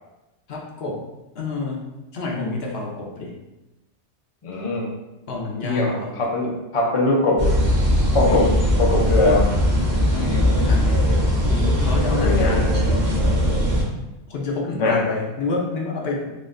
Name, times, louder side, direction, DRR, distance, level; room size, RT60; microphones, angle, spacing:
voice 1, 0.5-1.0 1.3-1.8 2.1-3.3 5.3-6.5 8.2-8.5 10.1-11.0 11.5-12.8 14.3-16.3, left 3 dB, 65° left, -2 dB, 0.9 m, -28 dB
voice 2, 4.4-4.9 5.6-7.6 8.1-8.5 8.8-9.6 12.1-12.7 14.8-15.0, left 2 dB, 40° left, -2 dB, 0.5 m, -21 dB
sound 1, 7.4-13.8, equal, 45° right, 0.9 m, -19 dB
4.0 x 3.0 x 2.5 m, 1.0 s
omnidirectional pair, 1.2 m